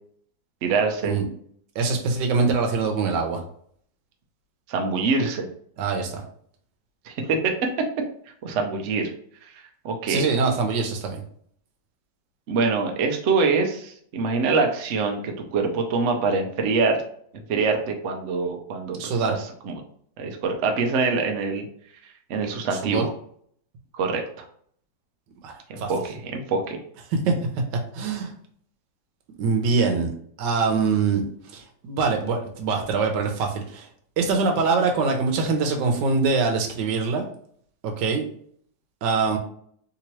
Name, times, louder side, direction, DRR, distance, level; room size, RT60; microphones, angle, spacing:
voice 1, 0.6-1.1 4.7-5.5 7.0-7.9 8.4-9.1 9.5-10.2 12.5-17.0 17.3-19.8 20.2-21.7 22.3-23.1 23.9-24.4 25.7-26.8, right 4 dB, 90° right, 3 dB, 0.6 m, -25 dB
voice 2, 1.7-3.4 5.8-6.2 10.1-11.2 19.0-19.4 22.8-23.1 25.4-25.9 27.1-27.3 27.9-28.3 29.4-30.1 30.4-31.3 31.5-33.9 34.2-37.3 37.8-38.3 39.0-39.4, right 4 dB, 70° right, 3 dB, 1.3 m, -23 dB
3.4 x 2.9 x 2.9 m, 0.62 s
omnidirectional pair, 2.1 m